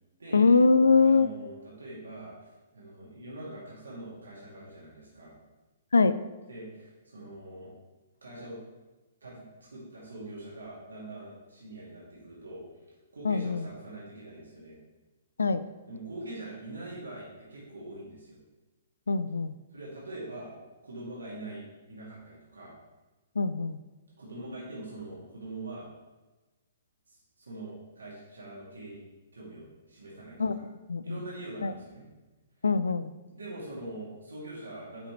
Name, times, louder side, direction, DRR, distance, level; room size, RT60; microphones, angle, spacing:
voice 1, 0.3-1.3 5.9-6.1 13.2-13.6 15.4-15.6 19.1-19.5 23.4-23.8 30.4-30.5 30.9-31.2 31.6-31.7 32.6-33.1, left 4 dB, 80° left, 13 dB, 0.4 m, -22 dB
voice 2, 1.0-5.4 6.5-7.7 8.2-8.6 9.2-9.4 9.7-12.6 13.1-14.8 15.9-18.4 19.7-20.5 20.8-22.7 24.2-25.9 27.1-29.0 29.3-30.6 31.0-32.1 33.3-35.1, right 2 dB, 80° right, -6 dB, 2.4 m, -43 dB
10.0 x 5.1 x 3.3 m, 1.2 s
figure-of-eight pair, 120°, 0 cm